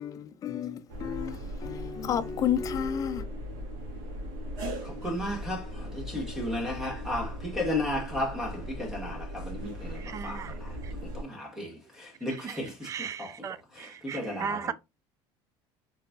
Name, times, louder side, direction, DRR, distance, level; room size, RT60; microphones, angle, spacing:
voice 1, 0.0-3.3, left 8 dB, 30° left, 0.5 m, -31 dB
sound 1, 0.9-11.2, equal, 90° right, 1.7 m, -38 dB
voice 2, 4.8-10.7 11.1-11.7 12.0-13.3 13.8-14.7, left 1 dB, 5° right, 1.3 m, -34 dB
voice 3, 10.0-10.5 10.8-10.9 12.3-14.7, right 7 dB, 30° right, 0.4 m, -37 dB
4.2 x 3.9 x 2.2 m
cardioid pair, 150°, 11 cm